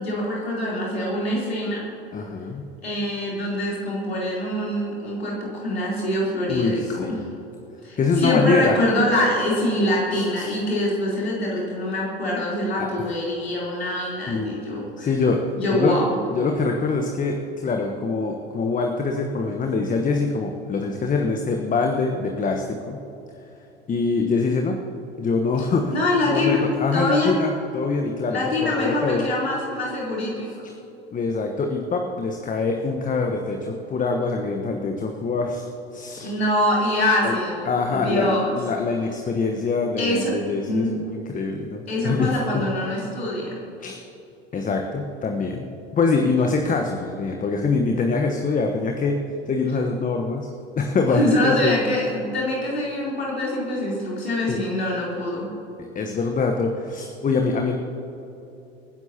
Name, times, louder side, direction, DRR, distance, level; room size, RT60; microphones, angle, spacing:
voice 1, 0.0-1.8 2.8-7.2 7.8-15.1 15.5-16.1 25.9-26.6 26.9-27.3 28.3-30.5 36.2-37.6 37.9-38.6 40.0-40.3 40.7-40.9 41.9-43.6 51.1-55.5, left 1 dB, 85° left, -5 dB, 3.7 m, -24 dB
voice 2, 2.1-2.7 6.5-7.2 8.0-8.8 10.1-10.5 12.8-13.1 14.3-14.5 15.0-15.4 15.7-16.0 16.3-23.0 23.9-24.8 25.2-26.0 26.2-29.3 30.6-30.7 31.1-36.3 37.2-37.3 37.6-42.6 43.8-44.0 44.5-49.2 49.5-50.5 50.8-51.7 54.5-54.6 55.9-57.8, left 4 dB, 25° left, 3 dB, 1.2 m, -24 dB
26.0 x 10.5 x 2.9 m, 2.9 s
figure-of-eight pair, 70°, 31 cm